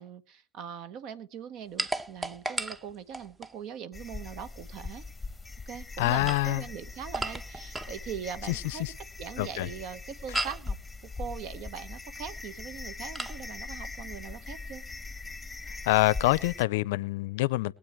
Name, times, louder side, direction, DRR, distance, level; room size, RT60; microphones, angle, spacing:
voice 1, 0.0-5.0 5.7-8.8 9.2-10.8 11.0-14.8, right 8 dB, 65° right, 1.1 m, -41 dB
sound 1, 1.8-3.6 6.0-8.0 10.3-10.7 13.1-13.4, right 2 dB, 20° right, 0.9 m, -35 dB
sound 2, 3.9-16.6, left 3 dB, 15° left, 1.0 m, -41 dB
voice 2, 6.0-6.6 8.4-8.9 9.4-9.7 10.3-10.4 15.8-17.7, left 19 dB, 80° left, 0.5 m, -26 dB
22.5 x 8.5 x 3.1 m
hypercardioid pair, 70°, 0 cm